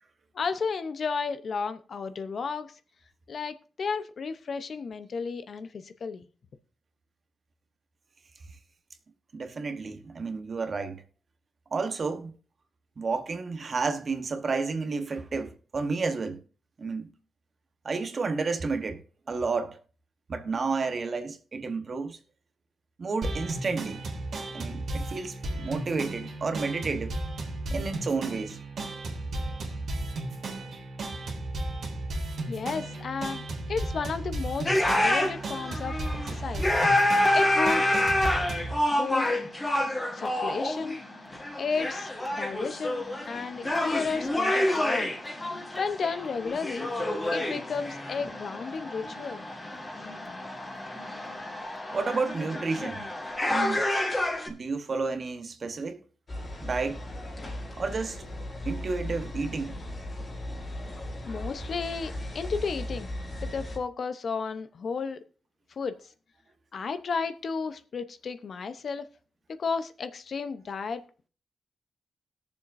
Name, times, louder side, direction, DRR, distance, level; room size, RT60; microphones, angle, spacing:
voice 1, 0.3-2.7 3.3-6.3 32.5-33.4 33.7-36.0 36.2-36.7 37.3-38.0 38.9-39.3 40.1-41.0 41.6-45.1 45.8-46.9 47.3-49.4 61.2-63.1 63.4-65.2 65.8-65.9 66.7-69.1 69.6-71.0, left 5 dB, 55° left, 0.7 m, -33 dB
voice 2, 9.3-11.0 11.7-12.4 13.0-16.4 16.8-17.1 17.8-19.0 19.3-19.8 20.3-22.2 23.0-24.0 24.5-27.2 27.7-28.6 51.9-53.1 53.4-53.9 54.5-56.0 56.6-57.0 57.8-58.2 58.6-59.8, right 4 dB, 45° right, 1.1 m, -31 dB
sound 1, 23.2-38.8, right 2 dB, 70° right, 2.0 m, -34 dB
sound 2, 34.6-54.5, left 1 dB, 20° left, 1.7 m, -28 dB
sound 3, 56.3-63.8, left 1 dB, 35° left, 2.1 m, -37 dB
20.5 x 7.0 x 2.6 m
wide cardioid pair, 130°, 0 cm